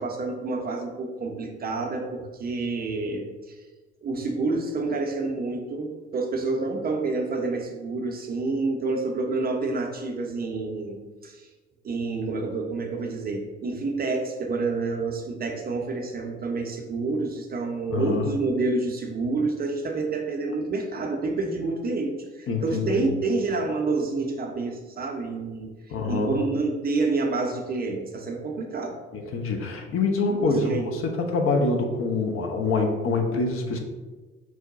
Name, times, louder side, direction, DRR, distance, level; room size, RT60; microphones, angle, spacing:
voice 1, 0.0-3.6 4.0-11.0 11.2-11.5 11.8-25.7 26.1-29.0 30.3-30.9, right 3 dB, 30° right, 2 dB, 0.6 m, -28 dB
voice 2, 17.9-18.3 22.5-23.0 25.9-26.4 29.1-33.8, left 3 dB, 40° left, 2 dB, 0.7 m, -25 dB
4.6 x 2.1 x 3.9 m, 1.3 s
figure-of-eight pair, 50°, 32 cm